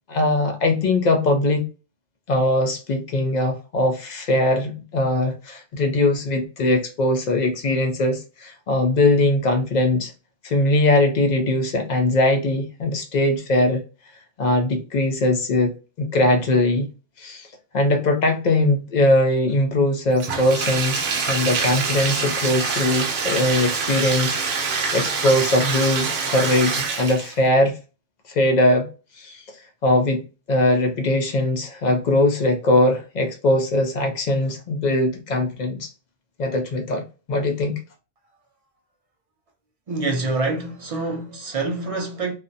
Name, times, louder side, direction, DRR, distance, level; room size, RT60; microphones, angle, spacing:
voice 1, 0.1-1.7 2.3-10.1 10.4-13.8 14.4-15.7 16.0-16.9 17.2-17.5 17.7-27.8 28.3-28.9 29.2-29.4 29.8-35.9 36.4-37.0 37.3-37.8, left 1 dB, 60° left, 0.4 m, -21 dB
Bathtub (filling or washing), 20.2-27.4, right 5 dB, 70° right, 0.8 m, -25 dB
voice 2, 39.9-42.3, right 3 dB, 45° right, 0.5 m, -26 dB
2.5 x 2.1 x 2.5 m
omnidirectional pair, 1.2 m